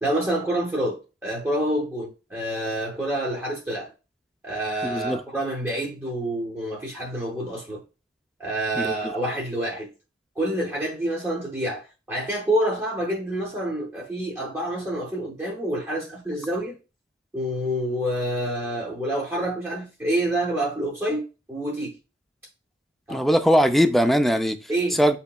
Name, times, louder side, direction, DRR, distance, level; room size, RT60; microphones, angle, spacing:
voice 1, 0.0-3.9 4.4-7.8 8.4-9.9 10.4-16.8 17.3-21.9 23.1-23.2 24.7-25.0, right 1 dB, 15° right, 0.7 m, -27 dB
voice 2, 4.8-5.2 8.8-9.1 23.1-24.6 25.0-25.2, equal, ahead, 0.3 m, -20 dB
7.9 x 2.8 x 2.2 m
head